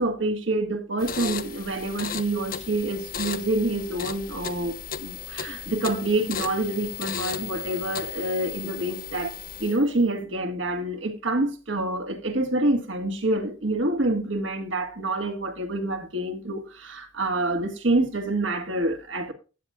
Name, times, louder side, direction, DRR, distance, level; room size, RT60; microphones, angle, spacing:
voice 1, 0.0-19.3, right 2 dB, 65° right, 1.8 m, -27 dB
sound 1, 1.0-9.9, left 7 dB, 45° left, 0.8 m, -35 dB
13.0 x 8.8 x 2.4 m
head